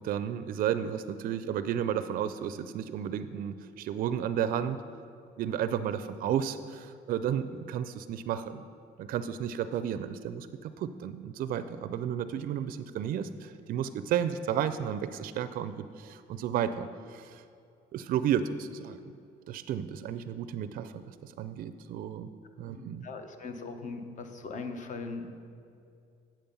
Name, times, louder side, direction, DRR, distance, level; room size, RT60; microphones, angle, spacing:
voice 1, 0.0-4.8 5.4-8.6 9.0-17.4 17.9-19.0 19.5-22.3 22.6-23.0, right 9 dB, 55° right, 12 dB, 0.4 m, -32 dB
voice 2, 22.8-25.4, left 4 dB, 45° left, 6 dB, 0.9 m, -40 dB
7.5 x 7.0 x 5.3 m, 2.5 s
cardioid pair, 110°, 17 cm